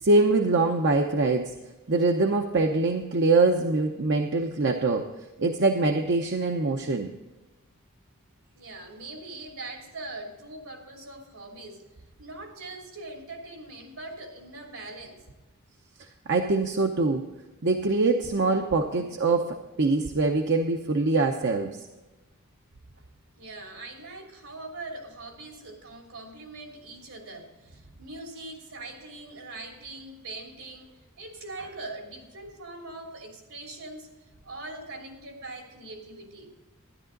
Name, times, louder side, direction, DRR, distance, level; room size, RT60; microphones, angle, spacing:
voice 1, 0.0-1.5 1.9-5.1 5.4-7.1 16.3-17.3 17.6-21.8, right 3 dB, 55° right, 4 dB, 0.7 m, -23 dB
voice 2, 8.5-11.8 12.2-15.2 19.0-19.1 22.9-23.0 23.4-34.1 34.4-36.6, right 2 dB, 80° right, 1 dB, 3.1 m, -42 dB
13.0 x 11.0 x 3.9 m, 1.1 s
head